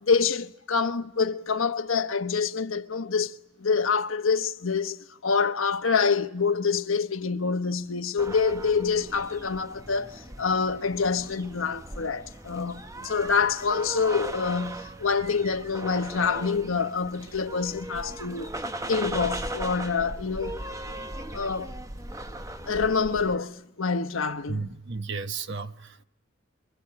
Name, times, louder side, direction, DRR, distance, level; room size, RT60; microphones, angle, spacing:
voice 1, 0.0-3.3 3.6-5.0 5.2-18.5 18.9-20.6 21.3-21.7 22.7-24.7, left 5 dB, 85° left, 1.2 m, -26 dB
sound 1, 8.2-23.4, right 1 dB, 15° right, 1.0 m, -38 dB
voice 2, 24.5-26.0, right 4 dB, 60° right, 1.1 m, -34 dB
26.0 x 24.5 x 8.9 m
head